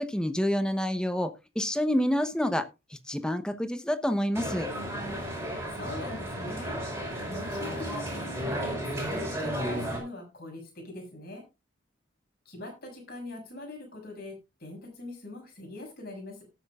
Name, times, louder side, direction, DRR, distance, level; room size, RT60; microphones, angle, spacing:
voice 1, 0.0-2.7 3.1-4.7, equal, 5° left, 8 dB, 0.9 m, -28 dB
sound 1, 4.3-10.0, equal, 15° right, 5.1 m, -33 dB
voice 2, 5.7-6.8 7.3-11.4 12.4-16.4, left 1 dB, 50° left, 2 dB, 6.3 m, -42 dB
18.0 x 8.3 x 2.4 m, 0.26 s
head